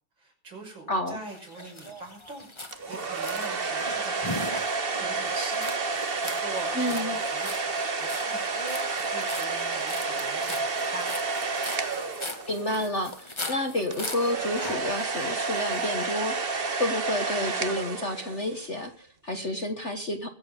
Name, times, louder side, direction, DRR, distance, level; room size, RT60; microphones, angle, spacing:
voice 1, 0.2-8.8 9.1-11.1, right 2 dB, 60° right, 1 dB, 6.5 m, -43 dB
voice 2, 0.9-1.2 6.7-7.2 12.5-16.3 16.8-20.3, left 1 dB, 35° left, 5 dB, 1.7 m, -30 dB
sound 1, 1.3-16.0, left 2 dB, 15° left, 1.6 m, -40 dB
sound 2, 2.7-12.8 13.9-18.6, right 4 dB, 30° right, 1.2 m, -30 dB
23.0 x 8.3 x 5.3 m, 0.37 s
omnidirectional pair, 2.4 m